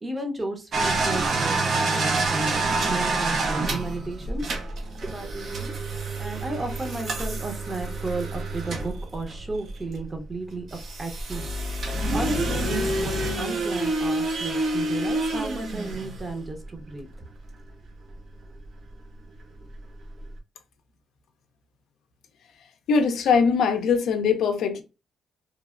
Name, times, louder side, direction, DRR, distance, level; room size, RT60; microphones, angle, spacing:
voice 1, 0.0-4.4 5.0-5.7 6.2-11.6 12.1-17.3, right 2 dB, 25° right, 0.8 m, -33 dB
sound 1, 0.7-10.0 10.7-16.6 18.1-18.2 18.6-18.7 19.8-19.9 20.0-20.2, right 2 dB, 55° right, 0.6 m, -27 dB
voice 2, 22.9-24.8, left 5 dB, 75° left, 0.5 m, -21 dB
3.1 x 2.0 x 2.4 m
cardioid pair, 90°, 0 cm